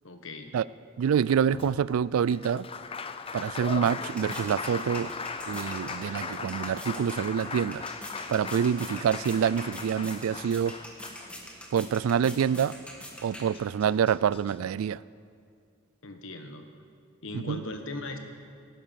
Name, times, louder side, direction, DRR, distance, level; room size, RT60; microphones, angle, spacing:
voice 1, 0.0-0.5 16.0-16.7 17.2-18.2, left 2 dB, 70° left, 1.3 m, -38 dB
voice 2, 1.0-2.7 3.3-5.1 5.5-7.8 8.3-10.8 11.7-12.8 13.2-15.0 17.3-17.6, right 8 dB, 85° right, 0.3 m, -26 dB
Applause, 1.5-11.8 13.2-13.3 13.5-14.6, left 5 dB, 25° left, 0.5 m, -38 dB
sound 1, 3.2-14.0, equal, 5° left, 1.7 m, -45 dB
15.0 x 12.0 x 5.8 m
head